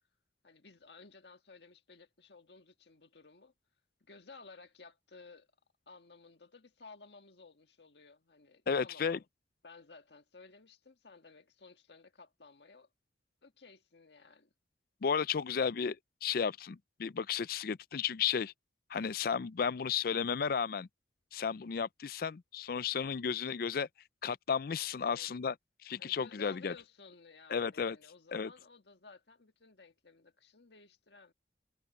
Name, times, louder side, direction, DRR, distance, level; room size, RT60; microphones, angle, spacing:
voice 1, 0.4-3.5 4.0-5.5 5.9-9.2 9.6-12.9 13.4-14.5 24.9-25.3 26.0-31.3, left 4 dB, 70° left, 1.7 m, -56 dB
voice 2, 8.7-9.2 15.0-18.5 18.9-20.9 21.3-23.9 24.2-25.5 25.8-26.7 27.5-28.0 28.3-28.5, left 6 dB, 55° left, 0.4 m, -33 dB
head